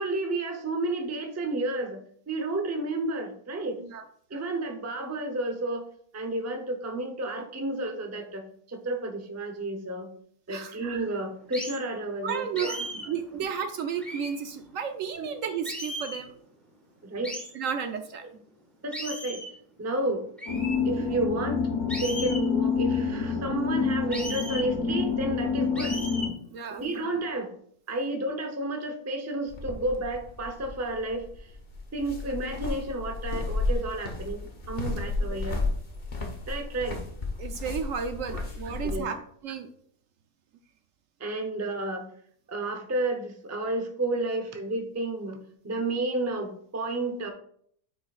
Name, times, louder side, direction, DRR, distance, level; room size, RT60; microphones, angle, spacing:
voice 1, 0.0-2.0 2.3-3.8 4.3-5.8 6.1-10.1 10.5-13.1 15.2-15.3 17.0-17.3 18.2-18.3 18.8-19.4 19.8-20.2 20.8-21.6 21.9-26.0 26.7-27.5 27.9-31.5 31.9-35.6 36.5-37.0 38.3-39.2 41.2-42.0 42.5-45.4 45.6-47.3, right 2 dB, 20° right, 4 dB, 0.5 m, -31 dB
sound 1, 11.5-11.8 12.6-13.1 14.0-14.4 15.6-16.3 17.2-17.5 18.9-19.6 20.4-20.8 21.9-22.4 24.1-24.7 25.8-26.3, equal, ahead, 1.4 m, -36 dB
voice 2, 12.2-12.7 13.1-16.3 17.5-18.2 26.5-26.8 37.4-39.2 39.4-39.7, right 7 dB, 70° right, 7 dB, 0.9 m, -32 dB
sound 2, 20.5-26.3, left 5 dB, 85° left, 1.6 m, -27 dB
sound 3, 29.5-39.0, left 2 dB, 35° left, 0.9 m, -33 dB
9.2 x 4.8 x 2.4 m, 0.63 s
omnidirectional pair, 1.6 m